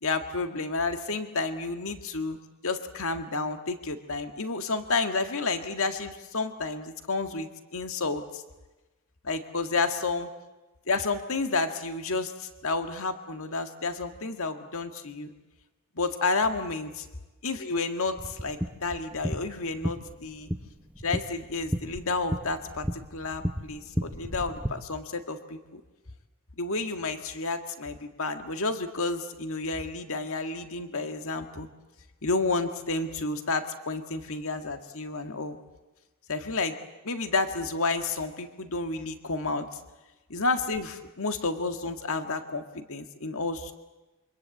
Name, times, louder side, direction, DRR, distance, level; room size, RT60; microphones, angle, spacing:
voice 1, 0.0-8.4 9.2-10.3 10.9-15.3 16.0-17.1 17.4-20.5 21.0-25.8 26.6-31.7 32.2-35.6 36.3-36.8 37.0-39.8 40.3-43.7, left 3 dB, 65° left, 7 dB, 1.9 m, -31 dB
sound 1, 18.2-24.7, equal, 5° right, 1.0 m, -34 dB
27.0 x 25.0 x 8.4 m, 1.1 s
head